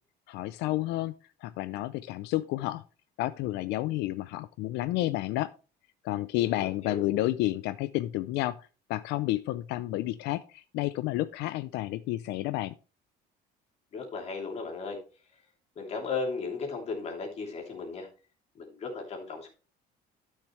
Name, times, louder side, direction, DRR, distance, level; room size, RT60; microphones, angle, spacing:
voice 1, 0.3-1.2 1.4-2.8 3.2-5.5 6.0-12.7, left 16 dB, 85° left, 14 dB, 0.5 m, -30 dB
voice 2, 6.4-7.0 13.9-15.0 15.8-18.1 18.5-19.5, left 4 dB, 40° left, 2 dB, 2.8 m, -36 dB
12.0 x 6.5 x 3.2 m, 0.34 s
cardioid pair, 165°, 17 cm